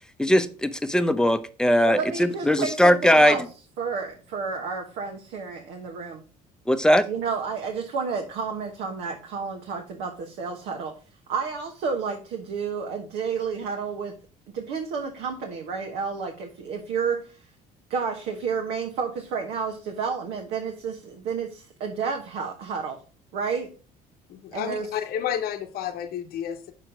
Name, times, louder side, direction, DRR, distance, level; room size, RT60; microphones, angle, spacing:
voice 1, 0.2-3.5 6.7-7.1, equal, 5° left, 0.7 m, -20 dB
voice 2, 1.8-3.4 3.8-6.2 7.1-10.9 11.3-14.1 14.5-17.4 17.9-23.0 23.3-23.7 24.5-24.9, right 5 dB, 75° right, 1.2 m, -30 dB
voice 3, 24.3-26.7, left 9 dB, 65° left, 0.8 m, -31 dB
6.0 x 4.4 x 5.0 m
supercardioid pair, 85°, 17 cm